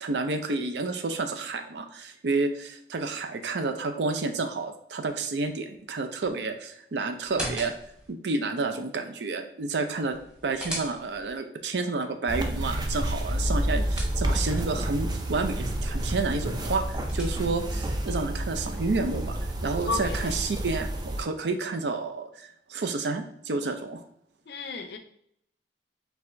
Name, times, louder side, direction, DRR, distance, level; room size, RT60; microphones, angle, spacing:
voice 1, 0.0-7.7 8.1-10.2 10.4-24.0, right 3 dB, 80° right, 7 dB, 0.5 m, -30 dB
sound 1, 7.2-8.1 10.1-11.4 13.3-14.6 16.6-17.7, equal, 5° right, 0.9 m, -39 dB
sound 2, 12.3-21.2, right 1 dB, 25° right, 0.3 m, -29 dB
voice 2, 19.9-20.3 24.5-25.0, left 3 dB, 65° left, 7 dB, 0.5 m, -32 dB
4.7 x 3.3 x 2.6 m, 0.69 s
head